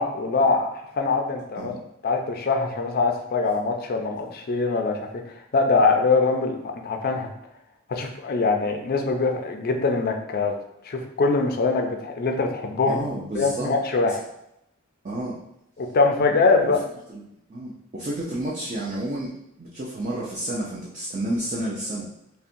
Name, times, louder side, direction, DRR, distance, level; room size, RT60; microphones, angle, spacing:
voice 1, 0.0-1.7 2.0-7.3 7.9-10.5 10.8-13.0 13.3-14.2 15.8-16.8, left 3 dB, 45° left, 4 dB, 0.4 m, -23 dB
voice 2, 12.9-13.7 15.0-15.4 16.6-16.7 17.1-17.2 17.5-19.3 19.6-22.1, right 1 dB, 35° right, -5 dB, 0.5 m, -30 dB
5.4 x 2.2 x 2.6 m, 0.81 s
head